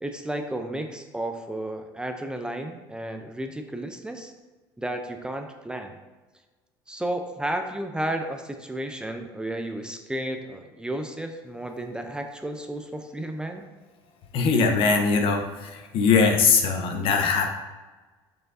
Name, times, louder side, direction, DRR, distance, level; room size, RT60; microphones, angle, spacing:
voice 1, 0.0-4.3 4.8-5.9 6.9-13.6, right 1 dB, 10° right, 5 dB, 0.6 m, -32 dB
voice 2, 14.3-17.5, left 5 dB, 60° left, 4 dB, 1.0 m, -21 dB
6.8 x 6.2 x 2.7 m, 1.3 s
supercardioid pair, 105°, 11 cm